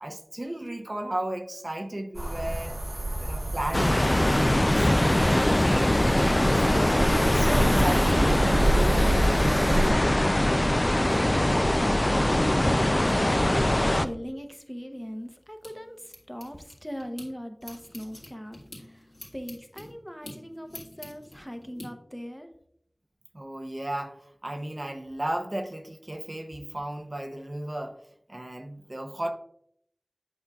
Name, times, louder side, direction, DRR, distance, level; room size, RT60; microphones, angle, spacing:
voice 1, 0.0-2.7 3.2-9.9 23.3-28.0 28.3-29.3, right 1 dB, 50° right, 4 dB, 0.7 m, -35 dB
sound 1, 2.1-9.9, right 1 dB, 75° right, 1.8 m, -28 dB
sound 2, 3.7-14.1, left 1 dB, 30° left, 0.3 m, -22 dB
voice 2, 10.3-19.0 19.3-22.5, equal, 5° left, 6 dB, 0.7 m, -40 dB
sound 3, 14.9-17.3 17.6-21.9, left 1 dB, 70° left, 1.8 m, -47 dB
8.1 x 5.4 x 2.3 m, 0.70 s
wide cardioid pair, 45°, 0 cm